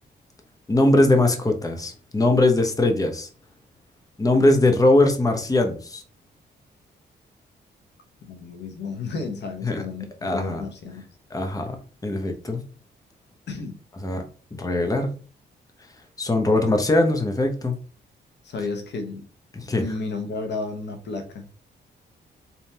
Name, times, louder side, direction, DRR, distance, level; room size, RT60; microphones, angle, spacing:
voice 1, 0.7-3.3 4.2-6.0 9.6-9.8 10.2-10.6 11.3-11.8 12.0-12.6 14.0-14.2 14.5-15.2 16.2-17.8 19.5-19.8, left 2 dB, 20° left, 0.9 m, -21 dB
voice 2, 8.2-11.0 12.1-12.6 13.5-13.7 18.4-19.2 19.8-21.5, left 3 dB, 70° left, 1.0 m, -33 dB
4.2 x 3.6 x 2.8 m
cardioid pair, 85°, 19 cm